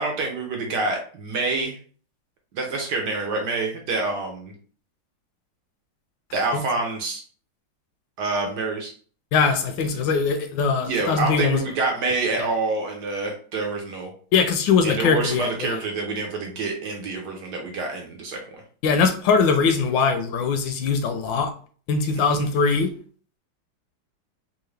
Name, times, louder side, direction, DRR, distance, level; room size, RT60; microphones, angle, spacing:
voice 1, 0.0-1.8 2.5-4.5 6.3-7.2 8.2-8.9 10.8-14.1 14.8-18.6 22.1-22.4, right 3 dB, 65° right, 2 dB, 1.2 m, -27 dB
voice 2, 9.3-11.6 14.3-15.8 18.8-21.5 21.9-22.9, left 5 dB, 75° left, 6 dB, 1.2 m, -21 dB
3.7 x 2.5 x 3.2 m, 0.43 s
omnidirectional pair, 2.2 m